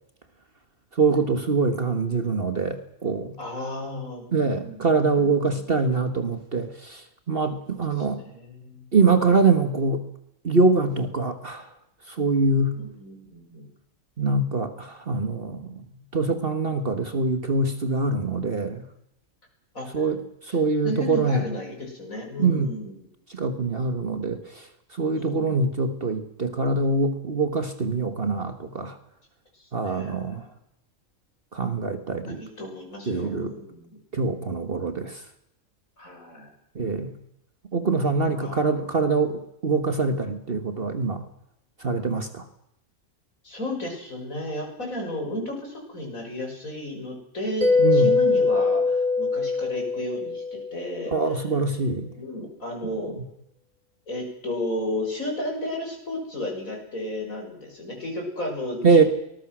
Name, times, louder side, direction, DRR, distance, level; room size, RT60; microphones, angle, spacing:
voice 1, 0.9-3.4 4.3-8.2 8.9-10.0 10.4-11.7 12.1-12.7 14.2-15.8 16.1-18.8 19.9-21.4 22.4-22.7 23.3-24.7 24.9-29.0 29.7-30.5 31.5-32.4 33.1-33.5 34.1-35.2 36.7-37.2 37.7-41.2 41.8-42.5 47.8-48.1 51.1-52.1 58.8-59.0, right 3 dB, 40° right, 9 dB, 1.6 m, -24 dB
voice 2, 3.4-5.6 8.0-8.9 12.7-13.7 19.7-20.0 20.5-20.6 20.8-23.1 25.1-25.6 29.5-30.5 32.3-34.0 36.0-36.5 38.4-38.8 43.4-51.4 52.2-53.1 54.1-59.1, left 1 dB, 70° left, 1 dB, 7.1 m, -34 dB
Mallet percussion, 47.6-51.1, left 4 dB, 70° right, 2.9 m, -22 dB
23.5 x 20.5 x 6.2 m, 0.80 s
omnidirectional pair, 1.5 m